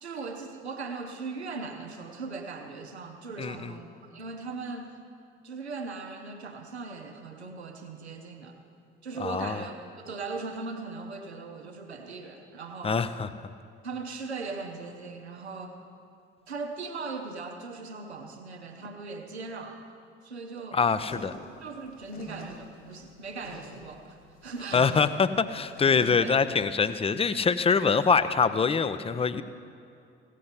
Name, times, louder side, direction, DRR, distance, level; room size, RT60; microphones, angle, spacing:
voice 1, 0.0-5.0 5.4-8.6 9.0-13.2 13.8-15.8 16.5-19.9 20.2-20.8 21.6-25.0 26.2-26.4, right 4 dB, 85° right, 4 dB, 0.8 m, -39 dB
voice 2, 3.4-3.7 9.2-9.6 12.8-13.3 20.7-21.3 24.7-29.4, left 5 dB, 20° left, 13 dB, 0.5 m, -24 dB
sound 1, 20.9-26.9, left 1 dB, 70° left, 2.8 m, -45 dB
16.5 x 8.3 x 5.7 m, 2.5 s
figure-of-eight pair, 45°, 32 cm